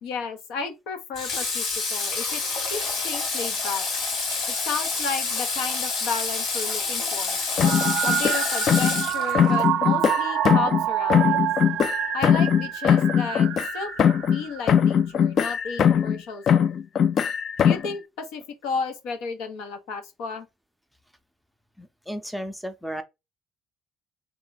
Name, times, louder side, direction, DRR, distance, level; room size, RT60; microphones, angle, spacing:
voice 1, 0.0-2.4 2.7-3.8 4.7-7.4 8.0-11.5 12.1-13.5 13.7-13.9 14.3-16.8 17.6-20.5, left 5 dB, 85° left, 0.9 m, -33 dB
Water / Water tap faucet, 1.2-9.7, left 4 dB, 70° left, 1.8 m, -28 dB
sound 1, 7.6-9.1 9.3-10.8 11.1-14.4 14.7-16.2 16.5-17.9, left 8 dB, 50° left, 0.3 m, -21 dB
sound 2, 7.6-14.9, right 12 dB, 80° right, 0.3 m, -27 dB
voice 2, 21.8-23.0, equal, ahead, 0.6 m, -34 dB
3.3 x 2.8 x 3.9 m
cardioid pair, 115°, 0 cm